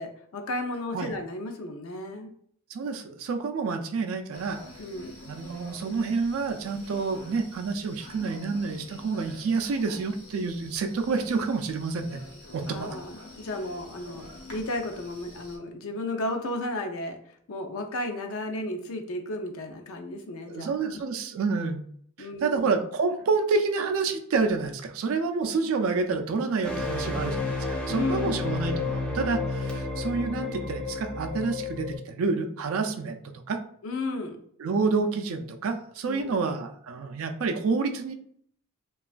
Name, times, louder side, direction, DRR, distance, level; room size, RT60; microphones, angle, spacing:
voice 1, 0.0-2.3 4.8-5.2 12.7-17.2 17.5-21.0 22.2-22.8 27.8-28.6 33.8-34.4 36.0-36.4, left 1 dB, 70° left, 4 dB, 0.5 m, -34 dB
voice 2, 2.7-4.6 5.3-12.2 12.5-12.9 20.5-21.8 22.2-33.6 34.6-38.1, right 4 dB, 65° right, 6 dB, 0.3 m, -28 dB
sound 1, 4.3-15.6, left 1 dB, 85° left, 1.0 m, -47 dB
sound 2, 26.6-32.0, left 3 dB, 5° left, 0.4 m, -31 dB
3.0 x 2.3 x 2.4 m, 0.66 s
head